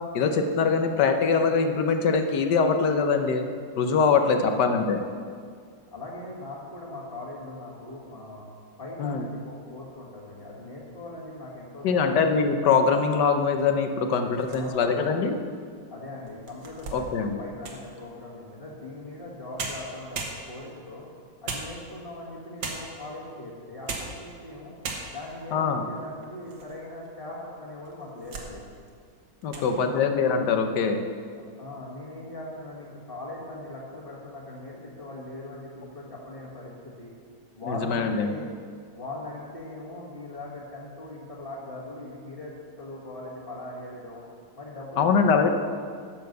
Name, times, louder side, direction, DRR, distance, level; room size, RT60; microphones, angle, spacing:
voice 1, 0.1-3.5 3.8-5.0 9.0-9.2 11.8-15.4 16.9-17.4 25.5-25.8 29.4-31.0 37.7-38.3 45.0-45.5, left 5 dB, 70° left, 6 dB, 1.3 m, -23 dB
voice 2, 4.2-4.8 5.9-8.4 8.8-12.2 14.5-15.1 15.9-21.1 21.4-24.7 25.1-28.7 29.4-30.1 31.6-37.1 37.5-38.5 38.9-44.3 44.6-45.2 45.4-45.5, left 2 dB, 30° left, -9 dB, 1.9 m, -40 dB
sound 1, 14.3-15.0 15.6-15.7 16.3-17.9 19.2-19.3 19.6-20.8 21.5-22.2 22.6-23.1 23.7-24.2 24.5-24.6 24.8-25.4 26.0-26.7 27.1-27.2 27.8-28.5 28.9-29.1 29.4-29.7, right 3 dB, 65° right, 1.7 m, -37 dB
10.5 x 6.8 x 6.6 m, 2.1 s
omnidirectional pair, 2.0 m